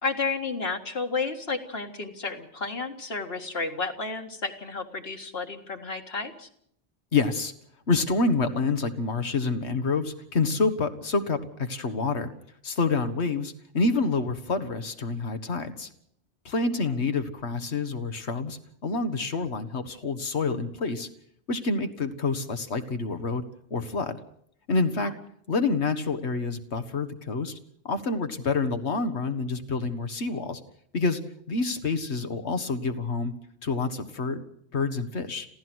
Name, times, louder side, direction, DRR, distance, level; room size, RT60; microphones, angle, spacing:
voice 1, 0.0-6.5 25.0-25.1, left 4 dB, 65° left, 5 dB, 2.2 m, -32 dB
voice 2, 7.1-7.5 7.9-12.3 12.6-15.9 16.5-21.1 21.5-23.4 23.7-24.2 24.7-25.1 25.5-27.6 27.9-30.6 30.9-31.2 31.5-33.3 33.6-34.4 34.7-35.5, left 3 dB, 85° left, 10 dB, 1.8 m, -27 dB
27.0 x 16.0 x 6.2 m, 0.70 s
omnidirectional pair, 1.1 m